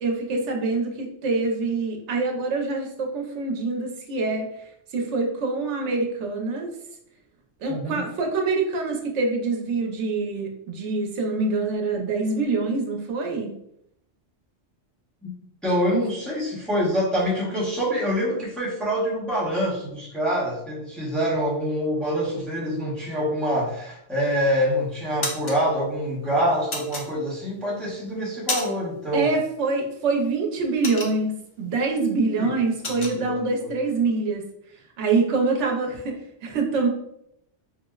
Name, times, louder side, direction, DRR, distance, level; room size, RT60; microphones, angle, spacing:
voice 1, 0.0-4.5 4.9-6.7 7.6-13.5 15.9-16.0 29.1-31.3 31.6-34.5 35.0-36.9, right 3 dB, 85° right, 2 dB, 0.9 m, -25 dB
voice 2, 7.7-8.0 15.2-15.3 15.6-29.3 32.3-32.5 32.8-33.7, equal, ahead, -6 dB, 0.7 m, -26 dB
sound 1, 24.2-24.6 25.0-25.6 26.7-27.6 28.0-29.0 29.2-29.5 29.9-31.6 31.9-32.1 32.4-33.2, left 2 dB, 40° left, 0.4 m, -31 dB
4.5 x 2.0 x 2.3 m, 0.76 s
omnidirectional pair, 1.2 m